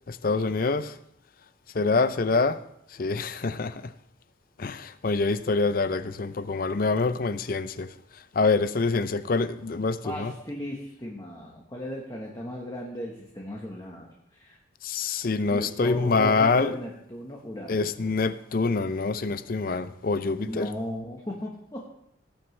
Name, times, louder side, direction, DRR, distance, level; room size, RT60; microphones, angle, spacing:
voice 1, 0.1-1.0 1.7-2.6 2.9-3.9 4.6-7.9 8.3-10.3 14.8-16.8 17.7-20.7, left 4 dB, 50° left, 0.5 m, -26 dB
voice 2, 10.0-14.6 15.5-17.9 20.4-21.9, left 1 dB, 20° left, 1.2 m, -36 dB
18.0 x 7.9 x 3.3 m
head